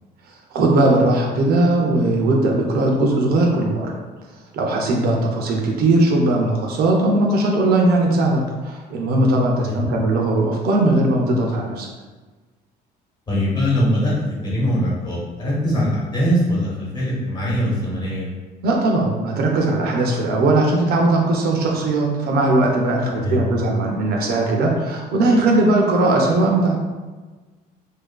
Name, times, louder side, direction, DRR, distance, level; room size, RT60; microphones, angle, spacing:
voice 1, 0.5-3.9 4.5-11.9 18.6-26.8, right 2 dB, 70° right, 0 dB, 0.5 m, -19 dB
voice 2, 13.3-18.3 23.2-23.4, equal, 25° left, -6 dB, 1.0 m, -22 dB
2.7 x 2.4 x 2.2 m, 1.3 s
cardioid pair, 110°, 17 cm